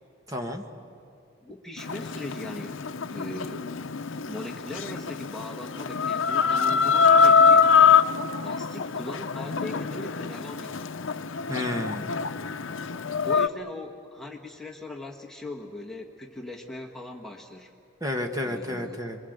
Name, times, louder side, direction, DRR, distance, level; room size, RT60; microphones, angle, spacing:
voice 1, 0.3-0.6 11.5-12.1 18.0-19.2, left 1 dB, 20° right, 3 dB, 1.5 m, -31 dB
voice 2, 1.4-3.7 4.2-7.7 8.4-10.9 13.2-17.7 18.4-19.0, left 1 dB, ahead, -1 dB, 1.5 m, -39 dB
Chicken rooster, 1.8-13.5, left 6 dB, 80° left, 0.7 m, -24 dB
27.5 x 22.5 x 8.0 m, 2.4 s
head